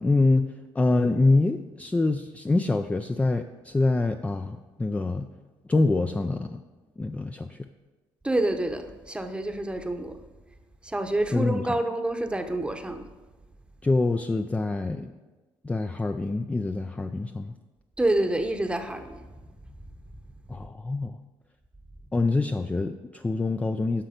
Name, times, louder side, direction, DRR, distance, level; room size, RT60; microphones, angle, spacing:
voice 1, 0.0-5.3 5.7-6.6 7.0-7.7 11.3-11.7 13.8-15.1 15.6-17.5 20.5-21.2 22.1-24.0, left 2 dB, 15° left, 7 dB, 0.4 m, -25 dB
voice 2, 8.2-10.1 10.8-13.0 18.0-19.2, right 1 dB, 10° right, 7 dB, 0.8 m, -27 dB
10.0 x 5.9 x 5.1 m, 1.3 s
cardioid pair, 90°, 10 cm